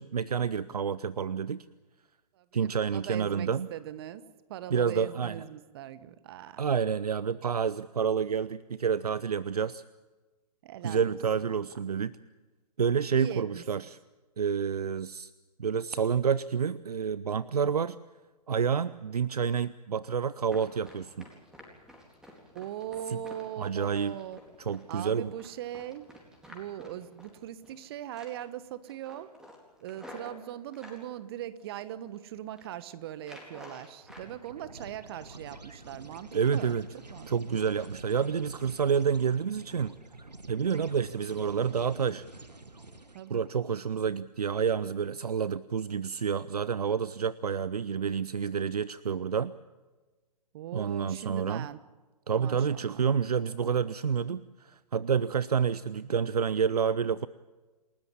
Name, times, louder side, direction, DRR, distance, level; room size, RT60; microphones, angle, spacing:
voice 1, 0.0-1.7 2.5-3.7 4.7-5.4 6.6-9.8 10.8-12.2 12.8-14.0 14.4-15.3 15.6-18.0 18.5-21.3 23.1-23.2 23.6-24.2 24.7-25.3 36.3-36.9 37.3-39.9 40.5-42.2 43.3-49.5 50.7-51.7 52.3-57.3, right 7 dB, 70° right, 18 dB, 0.6 m, -29 dB
voice 2, 2.3-6.6 10.6-11.1 11.4-11.7 13.1-13.4 13.8-13.9 22.5-24.4 24.9-26.1 26.5-29.3 29.8-36.8 37.1-37.6 43.1-43.4 50.5-51.8 52.4-53.0, right 11 dB, 40° right, 15 dB, 1.3 m, -40 dB
Run, 20.4-27.8 28.1-28.6 28.9-31.0 31.6-32.2 32.4-32.7 33.2-34.3 34.6-35.4 35.8-36.0 36.4-36.7 37.0-37.2 37.6-37.8 38.1-38.3, left 1 dB, 5° right, 4.1 m, -51 dB
sound 1, 34.0-43.5, right 2 dB, 90° right, 1.4 m, -48 dB
28.0 x 13.5 x 9.6 m, 1.2 s
figure-of-eight pair, 125°, 20 cm